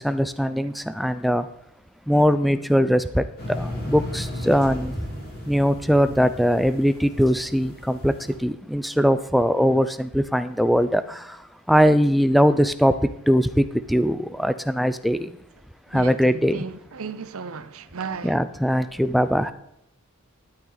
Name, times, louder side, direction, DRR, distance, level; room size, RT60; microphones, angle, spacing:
voice 1, 0.0-1.5 2.1-5.1 5.5-8.1 8.4-13.0 13.3-15.4 15.9-16.6 18.2-19.5, equal, ahead, 0.4 m, -21 dB
sound 1, 3.4-8.3, left 1 dB, 45° left, 3.5 m, -35 dB
voice 2, 15.9-18.4, right 5 dB, 70° right, 0.7 m, -35 dB
11.5 x 9.3 x 4.0 m
head